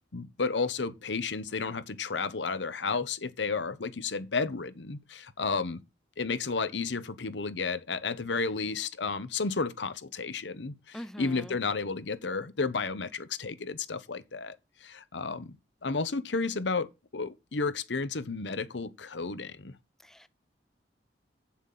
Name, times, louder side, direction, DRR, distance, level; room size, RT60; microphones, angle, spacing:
voice 1, 0.1-5.8 6.2-14.6 14.8-15.6 15.8-16.9 17.1-19.7, left 4 dB, 90° left, 0.9 m, -32 dB
voice 2, 10.9-11.5 20.0-20.3, equal, 5° left, 0.4 m, -43 dB
7.7 x 7.2 x 5.6 m
head